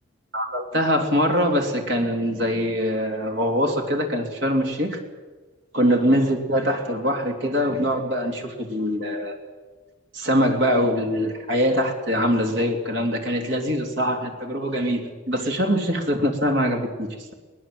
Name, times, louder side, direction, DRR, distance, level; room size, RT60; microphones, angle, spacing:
voice 1, 0.3-5.0 5.7-9.4 10.1-17.3, equal, 70° right, 3 dB, 3.2 m, -23 dB
22.5 x 20.0 x 7.9 m, 1.3 s
head